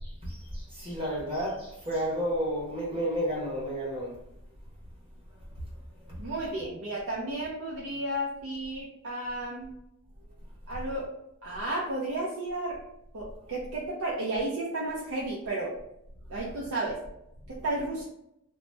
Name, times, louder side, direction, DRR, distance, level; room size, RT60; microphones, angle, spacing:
voice 1, 0.0-4.2, equal, 25° right, -6 dB, 1.1 m, -31 dB
voice 2, 6.2-9.7 10.7-11.1 11.4-12.8 13.1-15.7 16.3-17.0 17.5-18.0, right 2 dB, 65° right, -4 dB, 0.5 m, -33 dB
3.0 x 2.0 x 3.2 m, 0.81 s
head